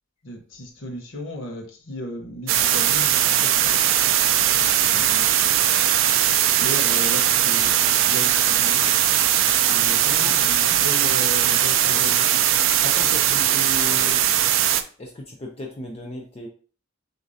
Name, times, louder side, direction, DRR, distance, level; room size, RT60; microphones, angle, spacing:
voice 1, 0.2-3.8 4.4-5.6 6.5-12.3, equal, 75° left, 2 dB, 1.0 m, -36 dB
sound 1, 2.5-14.8, right 10 dB, 90° right, 0.4 m, -19 dB
voice 2, 10.0-10.4 12.8-14.3 15.0-16.5, equal, 30° left, 0 dB, 0.6 m, -35 dB
6.4 x 2.5 x 2.7 m, 0.41 s
head